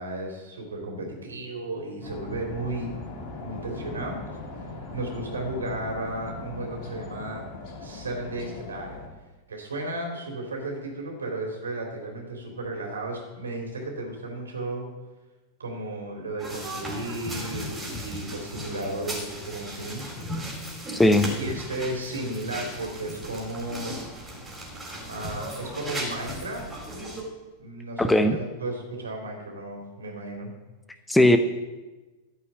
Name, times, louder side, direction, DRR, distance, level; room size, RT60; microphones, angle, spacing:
voice 1, 0.0-2.9 3.4-4.2 4.9-7.4 7.8-9.0 9.5-14.9 15.6-20.1 21.4-24.0 25.0-26.6 27.6-30.5, right 2 dB, 70° right, 1 dB, 3.3 m, -34 dB
sound 1, 2.0-9.1, left 3 dB, 45° left, 2.8 m, -39 dB
sound 2, 16.4-27.2, equal, 10° right, 4.0 m, -36 dB
voice 2, 20.9-21.3 28.0-28.4 31.1-31.4, left 1 dB, 5° left, 9 dB, 0.7 m, -18 dB
14.0 x 5.6 x 9.1 m, 1.2 s
figure-of-eight pair, 90°, 0 cm